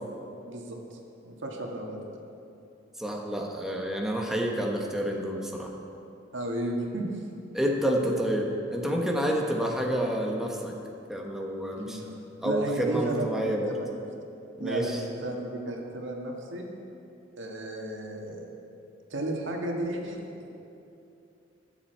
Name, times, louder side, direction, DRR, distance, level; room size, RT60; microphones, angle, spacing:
voice 1, 0.4-2.0 6.3-7.1 8.0-8.2 11.8-12.1 12.4-13.9 14.6-16.7 17.4-18.5 19.1-20.2, right 1 dB, 85° right, 0 dB, 1.7 m, -34 dB
voice 2, 3.0-5.7 7.5-10.8 11.1-12.0 12.4-13.8 14.6-15.0, equal, ahead, -1 dB, 1.1 m, -29 dB
21.0 x 7.2 x 4.5 m, 2.7 s
head